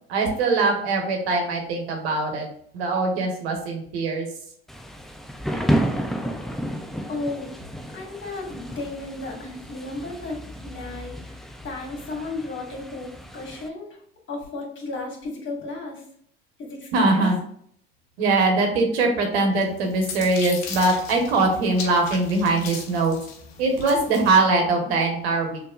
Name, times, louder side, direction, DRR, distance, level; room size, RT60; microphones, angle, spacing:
voice 1, 0.1-2.5 2.7-4.3 16.9-17.4 18.2-23.2 23.6-25.6, right 3 dB, 70° right, 2 dB, 1.4 m, -22 dB
Thunder / Rain, 4.7-13.7, equal, ahead, 0.6 m, -31 dB
voice 2, 7.1-7.6 7.9-11.4 11.6-14.0 14.3-16.0 16.6-17.3, left 2 dB, 35° left, 0 dB, 2.0 m, -34 dB
sound 1, 19.6-24.3, left 6 dB, 55° left, 1.0 m, -37 dB
6.6 x 3.2 x 2.5 m, 0.66 s
hypercardioid pair, 65°, 32 cm